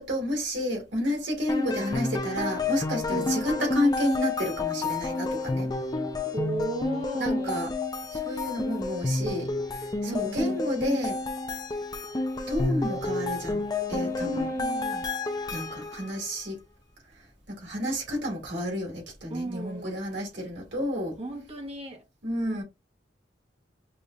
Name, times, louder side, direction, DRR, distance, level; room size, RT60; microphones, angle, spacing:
voice 1, 0.0-5.7 7.2-7.7 8.1-9.5 10.0-11.2 12.5-13.6 13.9-14.5 15.5-16.6 17.5-21.1 22.2-22.6, equal, 70° right, 2.5 m, -30 dB
sound 1, 1.5-16.2, left 3 dB, 20° left, 0.5 m, -30 dB
voice 2, 3.1-3.4 6.3-7.6 10.1-10.6 14.2-15.1 19.3-20.0 21.2-22.0 22.4-22.6, right 1 dB, 35° right, 1.1 m, -35 dB
5.2 x 2.8 x 2.4 m
head